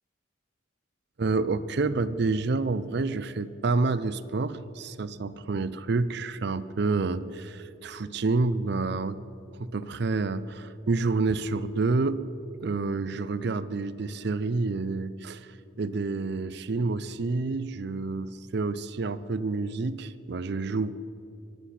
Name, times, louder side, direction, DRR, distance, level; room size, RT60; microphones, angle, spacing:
voice 1, 1.2-9.2 9.6-12.2 12.6-15.5 15.8-21.0, right 3 dB, 55° right, 15 dB, 0.5 m, -28 dB
23.0 x 8.2 x 5.8 m, 2.6 s
head